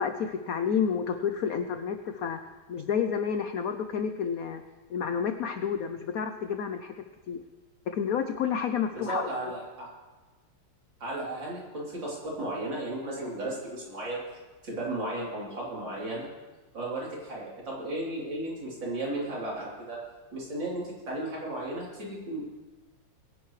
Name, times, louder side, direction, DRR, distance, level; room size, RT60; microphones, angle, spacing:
voice 1, 0.0-2.4 2.7-4.6 4.9-7.4 7.9-9.5, left 7 dB, 80° left, 8 dB, 0.7 m, -30 dB
voice 2, 8.9-9.9 11.0-14.2 14.6-16.3 16.7-20.0 20.3-22.4, right 1 dB, 60° right, -5 dB, 4.3 m, -34 dB
22.5 x 10.5 x 3.2 m, 1.2 s
omnidirectional pair, 2.3 m